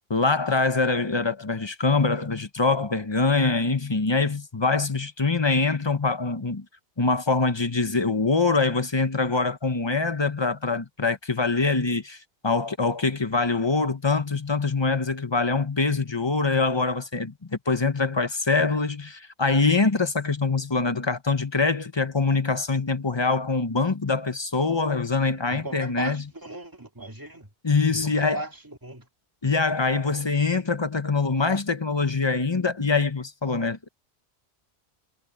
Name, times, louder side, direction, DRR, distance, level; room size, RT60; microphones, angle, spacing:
voice 1, 0.1-6.6 7.0-26.2 27.6-28.4 29.4-33.9, left 3 dB, 25° left, 1.0 m, -24 dB
voice 2, 25.5-27.5 27.9-29.1, right 1 dB, 20° right, 2.3 m, -37 dB
omnidirectional pair, 1.1 m